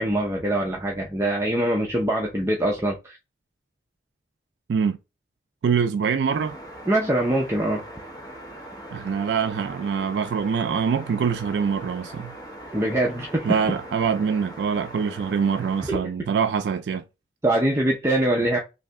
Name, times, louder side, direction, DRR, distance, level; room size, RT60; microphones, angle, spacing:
voice 1, 0.0-3.2 6.9-7.8 12.7-13.6 15.9-16.0 17.4-18.6, right 1 dB, 15° right, 0.5 m, -23 dB
voice 2, 5.6-6.6 8.9-12.3 13.4-17.0, right 6 dB, 75° right, 0.3 m, -24 dB
sound 1, 6.3-15.9, right 1 dB, 20° left, 1.0 m, -41 dB
3.2 x 2.6 x 3.5 m
head